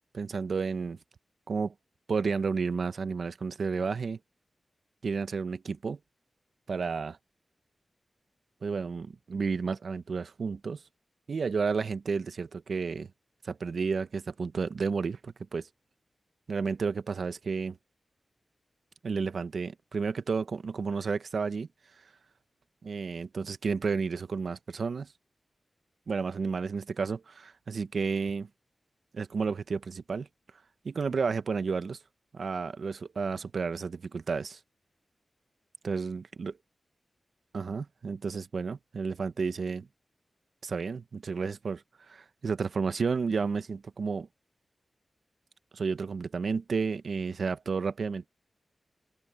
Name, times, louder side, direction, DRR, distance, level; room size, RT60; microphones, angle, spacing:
voice 1, 0.1-1.0 1.5-1.7 2.1-4.2 5.0-6.0 6.7-7.2 8.6-10.8 11.3-13.1 13.4-15.7 16.5-17.8 19.0-21.7 22.9-25.1 26.1-28.5 29.1-30.3 30.8-32.0 32.3-34.6 35.8-36.5 37.5-39.9 40.6-44.3 45.7-48.3, right 5 dB, 75° right, 0.9 m, -31 dB
open air
cardioid pair, 55°, 0 cm